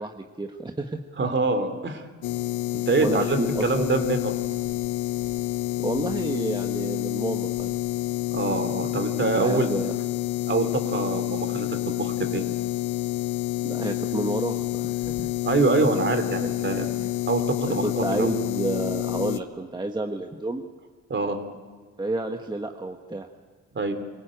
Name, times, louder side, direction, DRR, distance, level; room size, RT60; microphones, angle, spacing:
voice 1, 0.0-1.0 3.0-3.9 5.8-7.7 9.4-9.9 13.6-15.3 16.4-16.5 16.8-17.1 17.8-20.6 22.0-23.3, right 2 dB, 15° right, 4 dB, 1.3 m, -30 dB
voice 2, 1.2-2.0 2.7-4.3 8.3-9.7 10.5-12.4 15.4-16.9 17.2-18.3 21.1-21.4 23.7-23.9, right 3 dB, 40° right, 8 dB, 3.0 m, -25 dB
sound 1, 2.2-19.4, left 17 dB, 85° left, 1.0 m, -28 dB
24.0 x 16.5 x 9.0 m, 1.5 s
cardioid pair, 90°, 30 cm